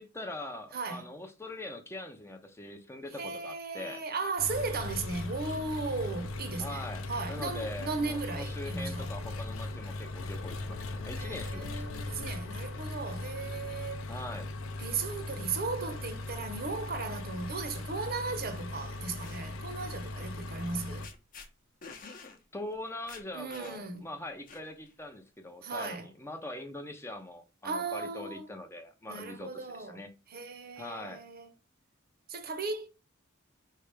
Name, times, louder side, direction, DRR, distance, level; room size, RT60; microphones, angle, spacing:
voice 1, 0.0-4.0 6.6-11.9 14.1-14.5 22.5-30.1 30.8-31.2, left 1 dB, 10° left, 0.5 m, -42 dB
voice 2, 0.7-1.1 3.2-9.1 11.2-14.1 14.8-21.1 23.3-24.1 25.6-26.1 27.6-28.5 29.1-30.0 30.3-31.5 32.3-32.9, right 4 dB, 50° right, 0.8 m, -36 dB
Engine, 4.4-21.1, left 2 dB, 85° left, 0.6 m, -39 dB
sound 1, 19.2-19.4 20.6-20.8 21.0-21.5 21.8-22.4 22.7-22.8 23.1-24.0 24.5-24.9, left 4 dB, 45° left, 0.8 m, -48 dB
4.8 x 3.3 x 3.3 m
head